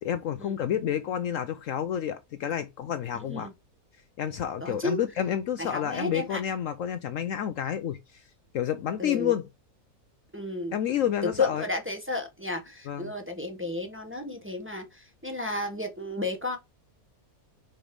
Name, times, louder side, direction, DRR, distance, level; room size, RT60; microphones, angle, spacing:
voice 1, 0.0-3.5 4.2-9.5 10.7-11.6 12.9-13.1, left 9 dB, 65° left, 0.9 m, -30 dB
voice 2, 3.1-3.5 4.6-5.0 5.6-6.4 9.0-9.3 10.3-10.7 11.4-16.6, left 2 dB, 10° right, 1.1 m, -32 dB
5.2 x 4.5 x 5.2 m
omnidirectional pair, 1.6 m